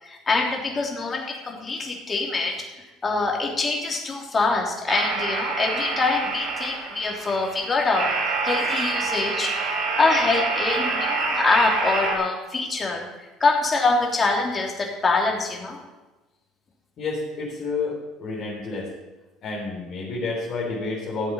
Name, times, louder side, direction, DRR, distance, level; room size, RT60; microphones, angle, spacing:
voice 1, 0.0-2.5 3.0-13.1 13.4-15.8, left 3 dB, 30° left, 1 dB, 3.2 m, -24 dB
sound 1, 4.9-12.1, right 4 dB, 65° right, 3.3 m, -27 dB
voice 2, 17.0-18.9 19.4-21.3, left 3 dB, 50° left, -5 dB, 3.7 m, -29 dB
14.5 x 7.8 x 5.6 m, 1.1 s
hypercardioid pair, 70°, 0 cm